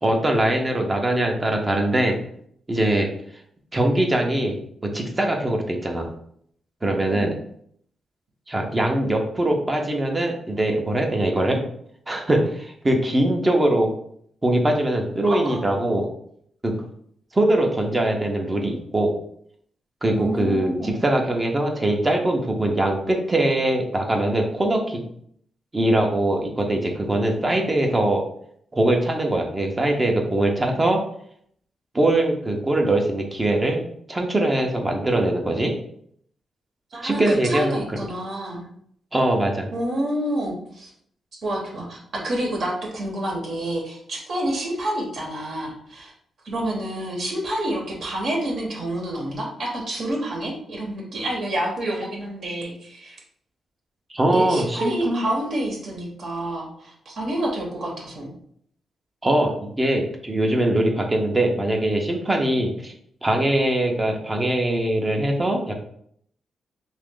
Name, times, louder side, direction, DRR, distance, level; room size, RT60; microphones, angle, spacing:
voice 1, 0.0-2.2 2.7-3.1 3.7-4.6 4.9-6.1 6.8-7.3 8.5-11.6 12.1-13.9 14.4-16.1 16.6-16.8 17.3-19.1 20.0-25.0 25.7-28.2 28.7-31.0 31.9-33.8 34.1-35.7 37.0-38.0 39.1-39.7 54.1-55.2 59.2-62.9 63.2-65.7, right 1 dB, 25° right, 2 dB, 0.6 m, -22 dB
voice 2, 15.3-15.6 20.2-21.0 36.9-38.6 39.7-40.9 41.4-46.1 46.4-53.2 54.3-58.3, right 1 dB, 65° right, -1 dB, 1.0 m, -28 dB
2.9 x 2.4 x 3.6 m, 0.65 s
cardioid pair, 90°, 0 cm